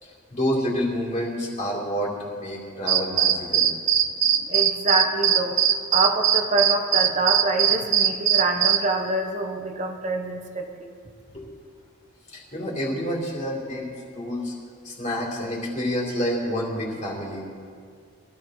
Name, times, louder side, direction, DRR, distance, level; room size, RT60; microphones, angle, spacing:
voice 1, 0.0-3.7 11.3-11.5 12.3-13.9 14.1-14.5 14.8-17.4, equal, 35° left, -4 dB, 3.3 m, -28 dB
sound 1, 2.9-8.8, right 9 dB, 70° right, 0.7 m, -20 dB
voice 2, 4.5-5.6 5.9-10.9, right 2 dB, 35° right, 3 dB, 0.9 m, -26 dB
22.5 x 14.0 x 3.2 m, 2.2 s
head